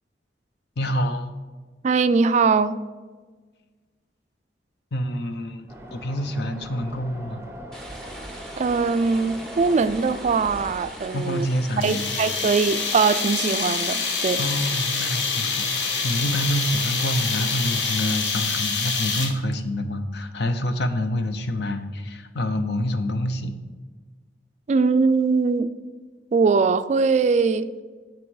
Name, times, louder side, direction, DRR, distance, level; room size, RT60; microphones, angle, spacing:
voice 1, 0.8-1.3 4.9-7.4 11.1-12.1 14.4-23.5, equal, 65° left, 0.7 m, -27 dB
voice 2, 1.8-2.8 8.6-11.5 11.8-14.4 24.7-25.7 26.3-27.7, right 4 dB, 40° right, 0.3 m, -21 dB
sound 1, 5.7-10.8, right 1 dB, 15° right, 0.8 m, -40 dB
sound 2, 7.7-18.0, right 1 dB, 5° left, 1.1 m, -41 dB
sound 3, 11.8-19.5, left 5 dB, 90° left, 1.0 m, -26 dB
7.2 x 6.1 x 4.7 m
head